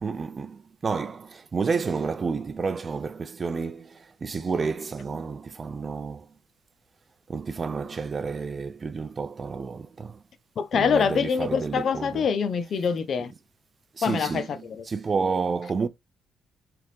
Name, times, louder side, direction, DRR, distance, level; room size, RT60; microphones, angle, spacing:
voice 1, 0.0-6.3 7.3-10.2 10.7-12.2 13.9-14.5 14.9-15.9, right 5 dB, 35° right, 0.5 m, -30 dB
voice 2, 10.6-13.3 14.0-14.9, left 6 dB, 55° left, 0.6 m, -25 dB
3.7 x 3.4 x 3.1 m
cardioid pair, 90°, 0 cm